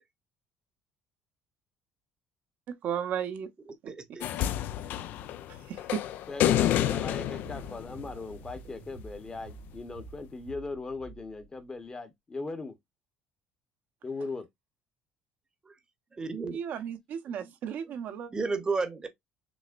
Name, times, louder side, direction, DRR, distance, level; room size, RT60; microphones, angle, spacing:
voice 1, 2.8-3.5 3.8-3.9 5.7-5.8 16.5-18.3, right 8 dB, 60° right, 0.7 m, -34 dB
voice 2, 3.9-4.3 16.2-16.6 17.4-17.5 17.9-18.0 18.3-19.1, right 4 dB, 25° right, 0.8 m, -32 dB
sound 1, 4.2-8.6 9.7-9.8, left 12 dB, 65° left, 0.4 m, -29 dB
voice 3, 6.3-12.8 14.0-14.4, left 3 dB, 25° left, 0.9 m, -39 dB
sound 2, 6.4-11.9, right 4 dB, 80° right, 1.5 m, -49 dB
6.2 x 2.1 x 2.4 m
supercardioid pair, 90°, 3 cm